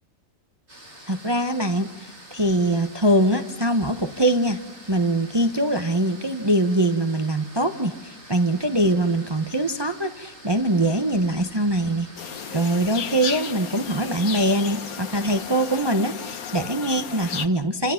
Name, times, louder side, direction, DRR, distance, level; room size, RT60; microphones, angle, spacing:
sound 1, 0.7-15.8, right 1 dB, 50° right, 6.5 m, -46 dB
voice 1, 1.1-4.6 4.9-12.1 12.5-17.9, right 1 dB, 20° right, 6 dB, 1.0 m, -23 dB
sound 2, 12.2-17.5, left 7 dB, 80° left, 1.6 m, -34 dB
29.5 x 26.5 x 5.9 m, 0.94 s
omnidirectional pair, 1.5 m